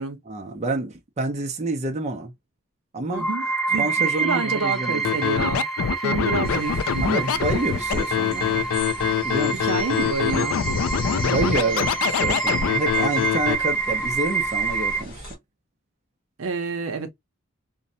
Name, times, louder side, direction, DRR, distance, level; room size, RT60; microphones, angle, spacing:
voice 1, 0.3-2.3 2.9-3.3 3.8-5.2 7.0-8.7 9.2-9.8 11.2-15.3, right 2 dB, 30° right, 0.5 m, -28 dB
sound 1, 3.1-15.0, right 4 dB, ahead, 0.8 m, -27 dB
voice 2, 3.1-5.6 6.0-7.3 9.5-10.6 16.4-17.1, right 4 dB, 80° right, 0.6 m, -28 dB
Scratching (performance technique), 5.0-13.5, left 7 dB, 85° left, 0.4 m, -24 dB
sound 2, 6.4-15.4, left 2 dB, 40° left, 0.8 m, -39 dB
2.6 x 2.0 x 2.6 m
head